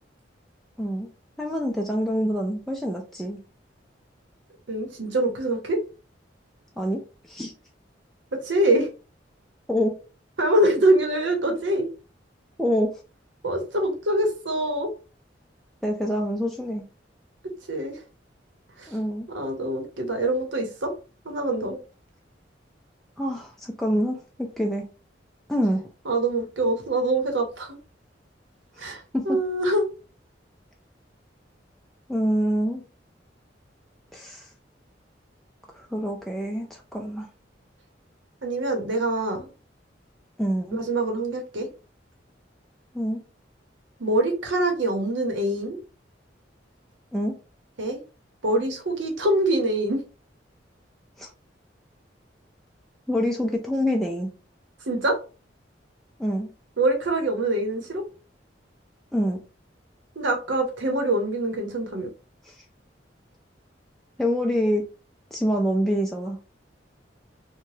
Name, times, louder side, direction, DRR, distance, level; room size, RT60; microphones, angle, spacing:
voice 1, 1.4-3.4 6.8-7.0 7.3-7.5 9.7-9.9 12.6-13.0 15.8-16.9 18.9-19.3 23.2-24.8 25.5-25.9 29.1-29.4 32.1-32.8 34.1-34.5 35.7-37.3 40.4-40.8 42.9-43.2 47.1-47.4 51.2-51.3 53.1-54.3 56.2-56.5 59.1-59.4 62.5-62.6 64.2-64.8 65.3-66.4, equal, ahead, 0.3 m, -26 dB
voice 2, 4.7-5.8 8.3-8.9 10.4-11.9 13.4-14.9 17.7-18.0 18.8-18.9 19.3-20.9 21.2-21.8 26.0-27.8 28.8-29.8 38.4-39.5 40.7-41.7 44.0-45.8 47.8-48.0 48.4-50.0 54.9-55.2 56.8-58.0 60.2-62.1, right 1 dB, 85° right, 0.9 m, -24 dB
2.7 x 2.2 x 3.1 m
head